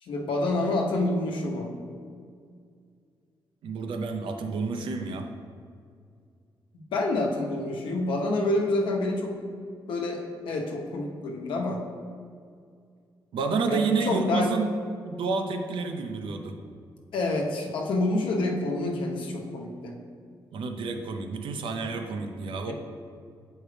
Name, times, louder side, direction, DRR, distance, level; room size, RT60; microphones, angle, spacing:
voice 1, 0.0-1.7 6.7-9.4 9.9-11.8 13.7-14.6 17.1-20.0 21.9-22.0 22.7-22.8, left 2 dB, 90° left, 0 dB, 0.9 m, -28 dB
voice 2, 3.6-5.3 13.3-14.7 15.0-16.5 20.5-22.7, right 4 dB, 85° right, 5 dB, 0.7 m, -29 dB
8.5 x 4.6 x 3.3 m, 2.2 s
cardioid pair, 120°, 8 cm